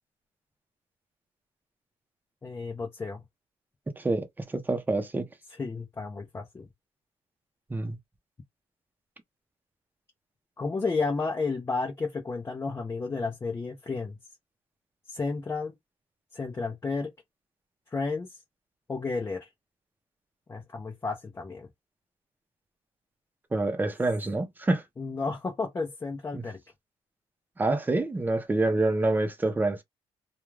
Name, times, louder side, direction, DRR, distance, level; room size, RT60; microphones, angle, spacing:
voice 1, 2.4-3.2 5.6-6.7 10.6-14.2 15.1-15.7 16.3-17.1 17.9-18.3 18.9-19.5 20.5-21.7 25.0-26.6, left 4 dB, 25° left, 0.6 m, -32 dB
voice 2, 4.0-5.3 7.7-8.0 23.5-24.8 26.3-26.4 27.6-29.8, right 2 dB, 15° right, 0.7 m, -27 dB
2.3 x 2.3 x 3.2 m
cardioid pair, 125°, 12 cm